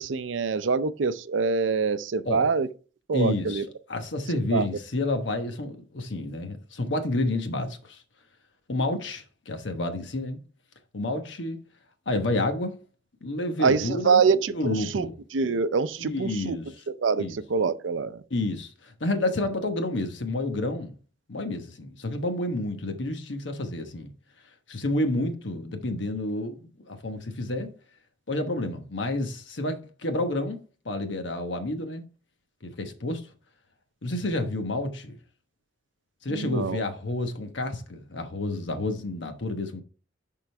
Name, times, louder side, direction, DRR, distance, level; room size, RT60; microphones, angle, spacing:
voice 1, 0.0-2.7 3.1-3.6 4.5-4.7 13.6-15.1 15.3-16.6 17.0-18.2 36.3-36.8, right 5 dB, 85° right, 0.5 m, -25 dB
voice 2, 3.1-8.0 8.7-10.4 10.9-11.6 12.1-12.7 13.2-15.1 16.0-16.8 17.2-17.4 18.3-20.9 21.3-24.1 24.7-27.7 28.3-30.6 30.8-32.1 32.6-33.2 34.0-35.2 36.2-39.8, left 2 dB, 75° left, 1.1 m, -30 dB
11.0 x 3.8 x 3.3 m
head